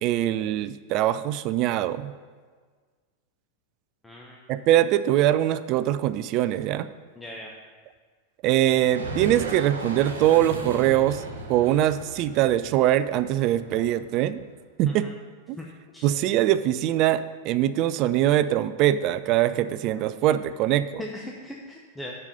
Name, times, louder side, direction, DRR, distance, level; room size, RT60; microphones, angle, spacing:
voice 1, 0.0-2.1 4.5-6.9 8.4-11.2 11.5-14.4 14.8-15.1 15.5-15.6 16.0-21.0, right 13 dB, 40° right, 14 dB, 0.3 m, -22 dB
voice 2, 4.0-4.4 7.2-7.5 14.9-15.2 15.6-16.1 21.0-22.2, left 1 dB, 10° left, -2 dB, 0.8 m, -39 dB
sound 1, 8.7-14.4, right 2 dB, 70° right, 1.2 m, -36 dB
7.0 x 5.5 x 6.7 m, 1.5 s
figure-of-eight pair, 90°, 0 cm